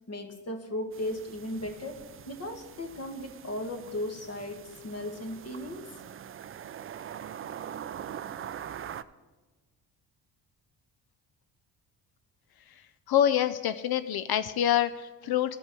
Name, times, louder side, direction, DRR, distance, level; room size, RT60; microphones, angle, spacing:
voice 1, 0.1-5.9, left 1 dB, 35° left, 4 dB, 1.6 m, -36 dB
sound 1, 0.9-9.0, right 9 dB, 30° right, 0.4 m, -43 dB
voice 2, 13.1-15.6, left 10 dB, 55° left, 12 dB, 0.5 m, -26 dB
14.5 x 5.3 x 4.6 m, 1.2 s
supercardioid pair, 65°, 44 cm